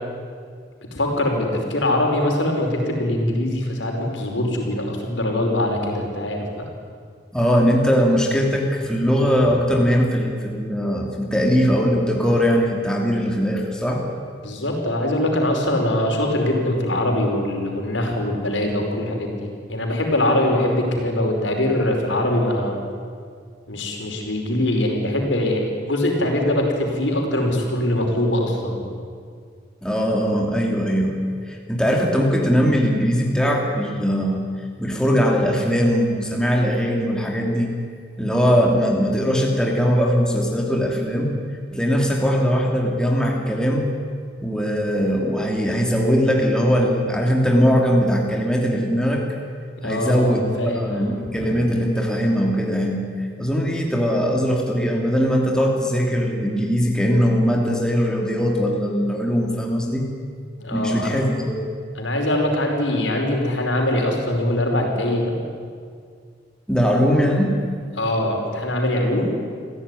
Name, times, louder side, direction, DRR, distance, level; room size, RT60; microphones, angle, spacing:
voice 1, 0.9-6.5 14.4-19.4 19.7-22.8 23.7-28.9 49.8-51.1 51.4-51.5 60.6-61.1 62.0-65.3 68.0-69.4, left 1 dB, 80° left, 2 dB, 5.3 m, -22 dB
voice 2, 7.3-14.0 29.8-31.2 31.5-34.5 34.8-37.7 38.2-41.3 41.7-43.9 44.4-49.2 49.8-60.0 60.7-61.6 66.7-67.6, equal, 5° left, -1 dB, 2.9 m, -20 dB
27.0 x 16.0 x 10.0 m, 2.1 s
head